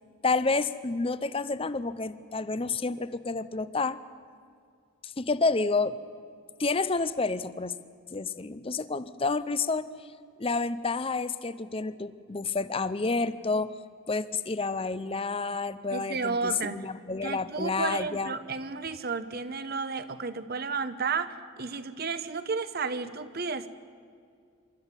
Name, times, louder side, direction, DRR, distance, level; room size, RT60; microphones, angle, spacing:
voice 1, 0.2-4.0 5.0-6.0 6.6-7.7 8.1-9.9 10.4-13.7 14.1-18.3, left 3 dB, 25° left, 14 dB, 0.6 m, -29 dB
voice 2, 15.9-16.9 17.2-23.7, right 4 dB, 45° right, 12 dB, 1.0 m, -32 dB
25.5 x 13.0 x 9.8 m, 2.3 s
head